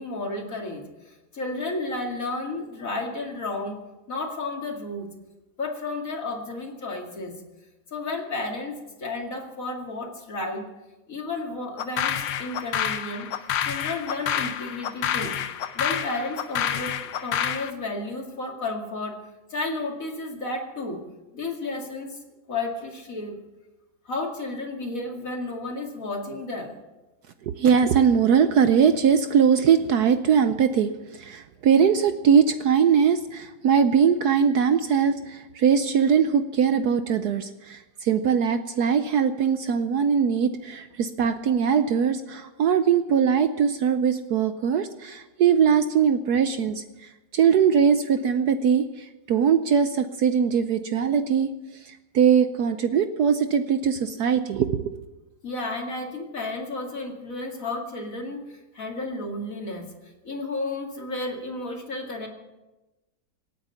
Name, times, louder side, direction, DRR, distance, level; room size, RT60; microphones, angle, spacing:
voice 1, 0.0-3.8 4.1-5.1 5.6-7.4 7.9-10.6 11.1-13.3 13.6-15.4 15.7-19.2 19.5-21.0 21.3-22.2 22.5-23.3 24.0-26.7 55.4-62.3, left 2 dB, 45° left, 1 dB, 2.6 m, -32 dB
sound 1, 11.8-17.7, left 9 dB, 75° left, 1.5 m, -28 dB
voice 2, 27.6-51.5 51.8-54.9, right 7 dB, 65° right, 9 dB, 1.1 m, -21 dB
26.0 x 8.9 x 5.7 m, 1.1 s
omnidirectional pair, 2.0 m